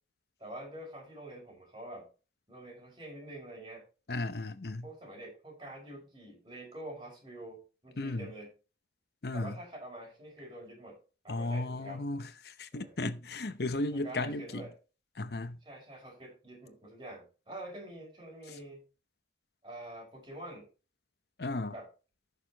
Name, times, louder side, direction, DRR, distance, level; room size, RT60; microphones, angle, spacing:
voice 1, 0.4-2.1 2.5-3.8 4.8-8.5 9.3-12.1 12.7-13.0 13.9-14.8 15.6-18.8 19.6-20.7 21.7-21.9, right 1 dB, 25° right, 5.9 m, -46 dB
voice 2, 4.1-4.9 8.0-8.3 9.2-9.6 11.3-14.7 15.2-15.6 21.4-21.7, left 2 dB, 60° left, 0.8 m, -35 dB
14.5 x 6.7 x 3.0 m
head